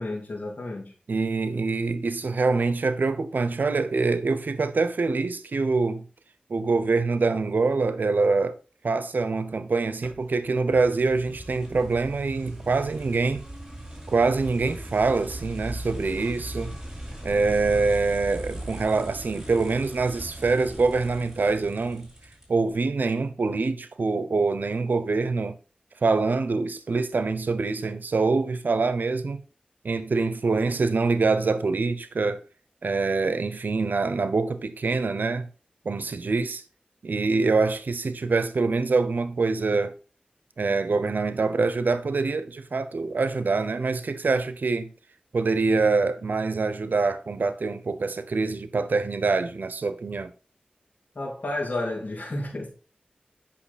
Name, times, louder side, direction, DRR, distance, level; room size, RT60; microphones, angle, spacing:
voice 1, 0.0-0.9 51.1-52.7, left 2 dB, 65° left, 3.0 m, -31 dB
voice 2, 1.1-6.0 6.5-8.6 8.8-13.4 14.1-16.7 17.2-22.1 22.5-25.6 26.0-29.4 29.8-32.4 32.8-35.5 35.8-36.6 37.0-39.9 40.6-44.9 45.3-50.3, right 3 dB, 85° right, 0.8 m, -25 dB
sound 1, 10.0-22.7, right 1 dB, 15° right, 3.9 m, -39 dB
8.7 x 6.0 x 4.1 m
cardioid pair, 45°, 3 cm